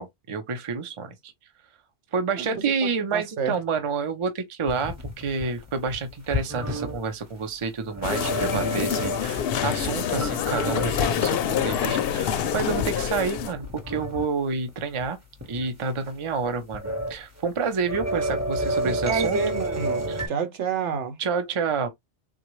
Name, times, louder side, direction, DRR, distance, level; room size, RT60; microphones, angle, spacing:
voice 1, 0.0-1.3 2.1-15.2 15.5-19.4 20.1-20.2 21.2-21.9, right 5 dB, 35° right, 0.6 m, -29 dB
voice 2, 3.1-3.5 18.8-21.2, right 5 dB, 75° right, 1.1 m, -29 dB
sound 1, 4.7-7.0 7.9-9.4 9.8-11.6 12.0-12.1 12.6-14.3 14.7-14.8 15.0-15.1 15.4-15.7 16.5-17.1 17.4-20.3, right 1 dB, 15° right, 0.9 m, -30 dB
sound 2, 8.0-13.5, left 8 dB, 65° left, 0.7 m, -26 dB
3.8 x 2.3 x 3.0 m
omnidirectional pair, 1.2 m